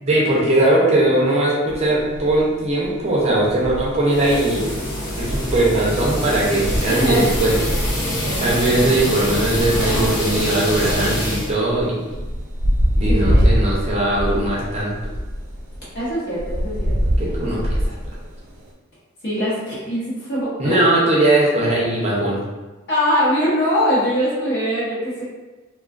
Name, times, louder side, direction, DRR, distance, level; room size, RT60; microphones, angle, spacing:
voice 1, 0.0-4.9 5.1-7.5 8.4-12.2 13.0-14.9 17.2-18.0 20.6-22.4, right 1 dB, 30° right, -5 dB, 0.5 m, -19 dB
sound 1, 1.7-18.7, equal, 90° right, 0.5 m, -25 dB
sound 2, 4.1-11.5, equal, 85° left, 0.9 m, -25 dB
voice 2, 6.9-7.6 8.2-9.0 13.1-13.6 15.9-16.7 17.3-17.4 19.2-21.0 22.9-25.2, equal, 55° left, -9 dB, 1.0 m, -22 dB
2.3 x 2.3 x 2.4 m, 1.2 s
head